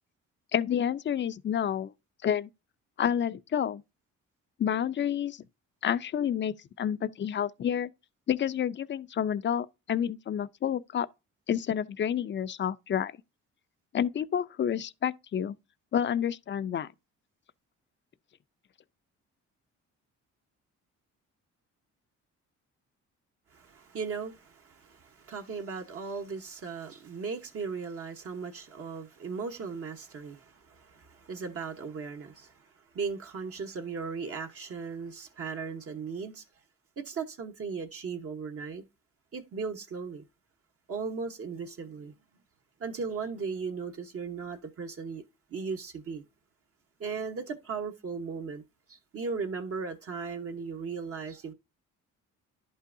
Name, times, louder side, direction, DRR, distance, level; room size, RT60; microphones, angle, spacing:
voice 1, 0.5-1.9 2.2-2.5 3.0-3.8 4.6-5.4 5.8-7.9 8.3-11.1 11.5-13.1 13.9-15.6 15.9-16.9, left 9 dB, 40° left, 0.5 m, -29 dB
voice 2, 23.5-36.4 37.0-38.8 39.3-40.2 40.9-42.1 42.8-45.2 45.5-46.2 47.0-48.6 48.9-51.5, right 5 dB, 50° right, 1.0 m, -37 dB
11.0 x 5.5 x 2.6 m
cardioid pair, 90°, 30 cm